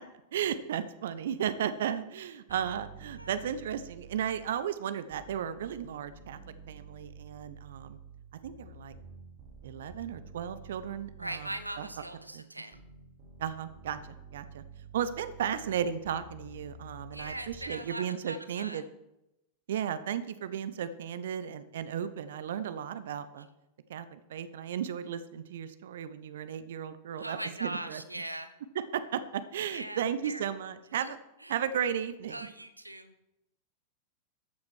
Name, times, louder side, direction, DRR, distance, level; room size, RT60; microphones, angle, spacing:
voice 1, 0.3-6.4 6.7-8.0 8.4-8.9 9.6-11.5 11.8-11.9 12.3-12.4 13.4-14.6 14.9-18.8 19.7-23.5 23.9-28.0 28.9-31.2 31.5-32.4, right 9 dB, 60° right, 13 dB, 0.9 m, -34 dB
sound 1, 2.5-4.7 5.1-12.2 12.7-17.7, right 4 dB, 40° right, 3.4 m, -50 dB
voice 2, 11.2-12.8 17.1-18.8 27.2-28.5 29.7-30.4 31.0-31.1 31.4-31.6 32.3-33.1, right 1 dB, 85° right, 11 dB, 0.9 m, -40 dB
13.5 x 8.6 x 6.3 m, 0.90 s
figure-of-eight pair, 90°, 0 cm